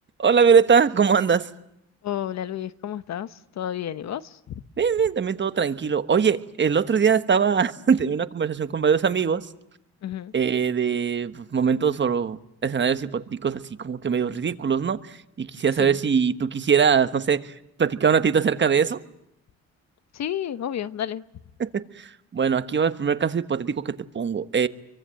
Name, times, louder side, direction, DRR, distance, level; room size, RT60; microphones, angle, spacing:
voice 1, 0.2-1.5 4.8-9.5 10.3-17.5 17.8-19.0 21.6-24.7, right 6 dB, 40° right, 1.3 m, -22 dB
voice 2, 2.0-4.6 10.0-10.3 15.8-16.0 20.1-21.2, left 10 dB, 60° left, 1.1 m, -31 dB
29.5 x 24.0 x 7.7 m
cardioid pair, 90°, 30 cm